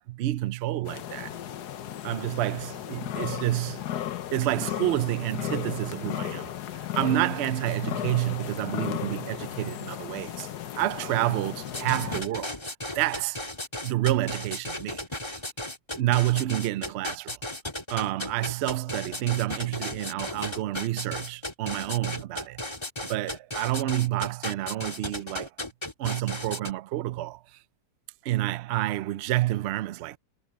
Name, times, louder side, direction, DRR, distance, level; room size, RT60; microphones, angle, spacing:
voice 1, 0.0-1.3 2.0-3.8 4.3-10.5 10.7-12.6 12.9-13.4 13.8-15.0 15.3-15.4 16.0-17.4 17.9-22.6 23.1-25.5 26.0-27.6 28.2-30.2, right 15 dB, 85° right, 0.5 m, -29 dB
sound 1, 0.8-12.2, left 12 dB, 80° left, 1.5 m, -35 dB
sound 2, 11.7-26.7, left 1 dB, 15° left, 2.3 m, -35 dB
omnidirectional pair, 1.7 m